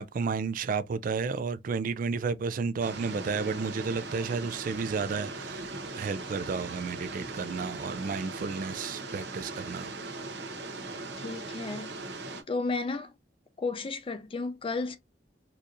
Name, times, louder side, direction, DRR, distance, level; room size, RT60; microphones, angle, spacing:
voice 1, 0.0-9.9, right 5 dB, 50° right, 0.3 m, -32 dB
sound 1, 2.8-12.4, right 2 dB, 75° right, 0.8 m, -39 dB
voice 2, 11.2-11.9 12.5-13.2 13.6-15.0, left 3 dB, 30° left, 0.4 m, -33 dB
4.3 x 2.6 x 2.4 m
head